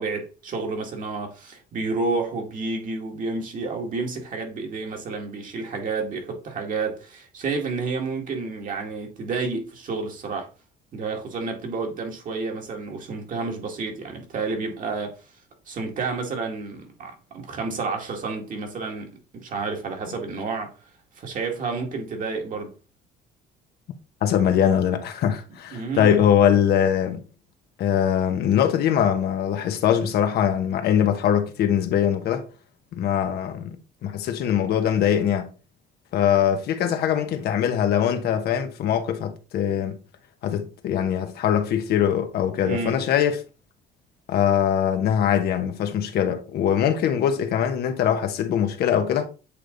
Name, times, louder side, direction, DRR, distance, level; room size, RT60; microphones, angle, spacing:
voice 1, 0.0-10.5 10.9-15.2 15.7-20.7 21.2-22.7 25.7-26.2 42.7-43.0, right 4 dB, 50° right, 2.1 m, -30 dB
voice 2, 24.2-27.2 27.8-32.5 32.9-35.5 36.1-40.0 40.4-43.4 44.3-49.3, left 9 dB, 70° left, 1.1 m, -22 dB
8.5 x 3.4 x 3.9 m
cardioid pair, 110°, 17 cm